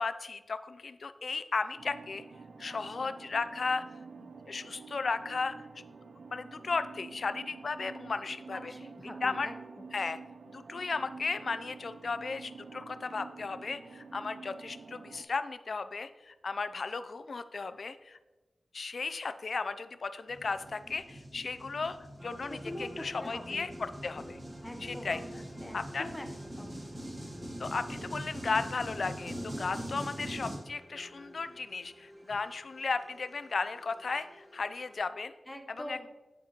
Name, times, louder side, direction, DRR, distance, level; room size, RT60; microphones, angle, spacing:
voice 1, 0.0-2.2 2.6-3.8 4.2-5.5 6.3-8.7 9.2-9.5 9.9-10.2 10.5-18.2 18.7-22.0 22.2-24.4 24.8-25.2 25.7-26.1 27.6-35.3 35.9-36.1, left 4 dB, 70° left, 12 dB, 0.3 m, -35 dB
sound 1, 1.8-15.2, right 4 dB, 90° right, 0.4 m, -49 dB
voice 2, 2.7-3.1 8.5-9.5 22.5-23.7 24.6-25.2 25.6-26.3 26.6-26.9 35.5-36.1, left 1 dB, 15° left, 4 dB, 0.8 m, -44 dB
sound 2, 20.3-30.6, right 1 dB, 35° right, 1.3 m, -43 dB
sound 3, 22.2-35.0, equal, 20° right, 0.9 m, -51 dB
9.6 x 4.3 x 2.9 m, 1.1 s
wide cardioid pair, 90°, 0 cm